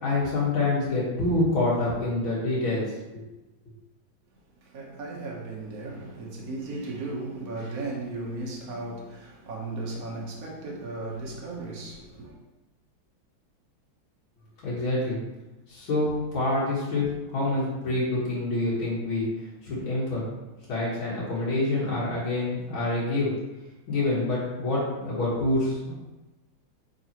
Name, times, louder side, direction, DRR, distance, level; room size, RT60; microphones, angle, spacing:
voice 1, 0.0-2.9 3.1-3.2 14.6-15.2 15.7-19.3 19.6-20.2 20.7-23.3 23.9-25.9, left 2 dB, 90° left, 2.4 m, -26 dB
voice 2, 4.6-12.3, right 2 dB, 50° right, 1.5 m, -36 dB
8.1 x 3.9 x 3.0 m
omnidirectional pair, 2.1 m